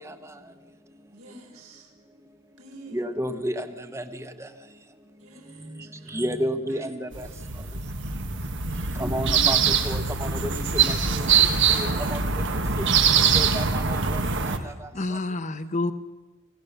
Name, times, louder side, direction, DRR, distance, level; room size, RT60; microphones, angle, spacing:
voice 1, 1.1-1.9 2.6-3.1 5.2-6.2 6.7-6.9 8.8-9.5, right 3 dB, 75° right, 1 dB, 4.0 m, -47 dB
voice 2, 2.9-3.7 3.9-4.0 4.4-4.5 5.7-7.3 9.0-9.6 9.8-12.2 12.5-12.8 13.3-14.2 14.5-14.9, equal, 15° right, 9 dB, 1.1 m, -32 dB
sound 1, 7.1-14.6, right 6 dB, 55° right, 1.5 m, -23 dB
voice 3, 14.5-15.9, left 2 dB, 35° left, 12 dB, 1.0 m, -29 dB
25.5 x 17.0 x 6.8 m, 1.2 s
head